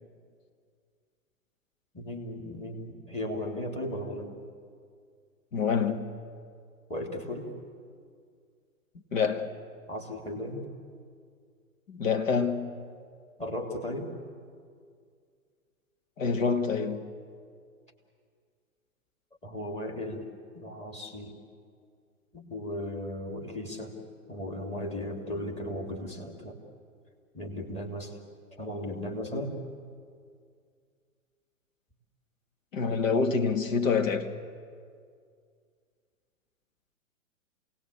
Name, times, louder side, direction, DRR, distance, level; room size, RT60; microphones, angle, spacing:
voice 1, 1.9-4.4 6.9-7.5 9.9-10.7 13.4-14.1 19.4-20.3 20.5-21.4 22.3-24.0 24.3-26.6 27.3-28.2 28.6-29.5, left 1 dB, 15° left, 3.1 m, -36 dB
voice 2, 5.5-6.1 9.1-9.5 11.9-12.7 16.2-17.0 32.7-34.3, left 5 dB, 65° left, 1.9 m, -26 dB
27.5 x 18.5 x 8.5 m
figure-of-eight pair, 115°, 43 cm